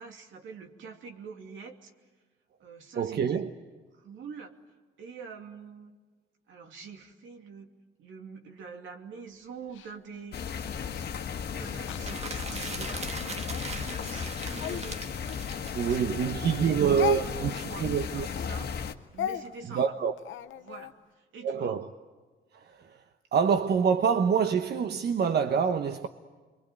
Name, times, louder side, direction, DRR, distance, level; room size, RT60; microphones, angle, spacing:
voice 1, 0.0-1.9 2.6-3.4 3.9-4.5 5.0-6.0 6.5-7.7 8.0-10.4 11.5-15.0 15.6-17.9 18.1-18.7 19.1-19.9 20.6-21.8, right 5 dB, 75° right, 2.8 m, -45 dB
voice 2, 3.0-3.5 15.7-18.3 19.7-20.1 21.4-21.9 22.5-23.0 23.3-26.1, right 7 dB, 55° right, 1.1 m, -26 dB
Speech, 9.7-12.9 13.4-16.2 16.5-20.9, left 12 dB, 75° left, 0.9 m, -39 dB
sound 1, 10.3-18.9, left 7 dB, 55° left, 1.6 m, -35 dB
sound 2, 11.9-16.6, right 3 dB, 35° right, 1.7 m, -40 dB
27.5 x 23.5 x 9.3 m
cardioid pair, 90°, 20 cm